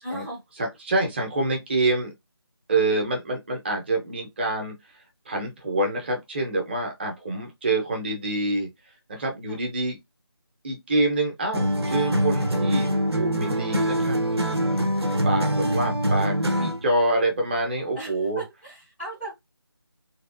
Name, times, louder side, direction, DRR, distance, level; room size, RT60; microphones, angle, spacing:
voice 1, 0.0-0.4 9.5-9.6 17.9-19.3, right 1 dB, 5° right, 0.5 m, -38 dB
voice 2, 0.6-2.1 2.7-4.7 5.3-8.7 9.1-10.0 10.6-12.9 13.1-14.2 15.2-18.4, right 2 dB, 25° right, 1.0 m, -26 dB
sound 1, 11.5-16.9, equal, 75° right, 1.0 m, -24 dB
3.4 x 2.5 x 2.6 m
figure-of-eight pair, 160°, 14 cm